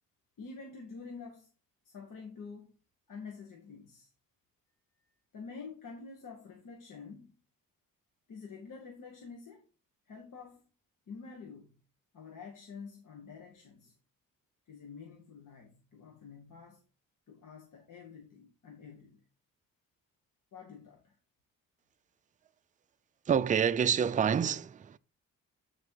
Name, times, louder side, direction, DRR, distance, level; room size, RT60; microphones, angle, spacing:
voice 1, 0.4-1.5 1.8-2.8 3.1-4.1 5.3-7.4 8.3-9.6 10.1-10.6 11.1-11.8 12.1-13.9 14.7-16.8 17.3-19.2 20.5-21.2, left 5 dB, 65° left, 1.4 m, -48 dB
voice 2, 23.3-25.0, right 8 dB, 25° right, 0.4 m, -27 dB
8.4 x 3.7 x 4.5 m
cardioid pair, 100°, 34 cm